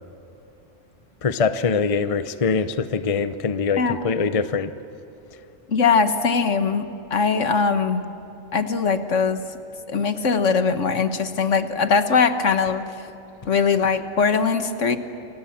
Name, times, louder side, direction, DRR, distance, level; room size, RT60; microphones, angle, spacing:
voice 1, 1.2-4.7, left 5 dB, 30° left, 11 dB, 0.7 m, -23 dB
voice 2, 5.7-8.0 8.5-9.5 9.9-12.9 13.5-15.0, left 5 dB, 65° left, 9 dB, 1.6 m, -21 dB
29.5 x 25.5 x 7.4 m, 2.9 s
omnidirectional pair, 1.4 m